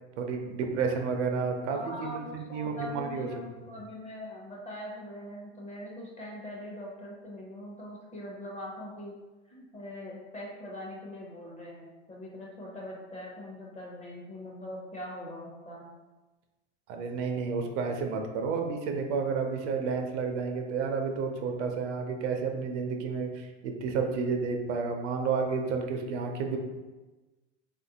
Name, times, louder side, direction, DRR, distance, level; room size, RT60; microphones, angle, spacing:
voice 1, 0.2-3.3 3.6-3.7 16.9-26.6, right 5 dB, 80° right, 4 dB, 0.6 m, -31 dB
voice 2, 1.7-9.1 9.5-15.9, left 1 dB, 20° left, -3 dB, 0.6 m, -42 dB
3.3 x 2.5 x 2.7 m, 1.2 s
supercardioid pair, 130°, 34 cm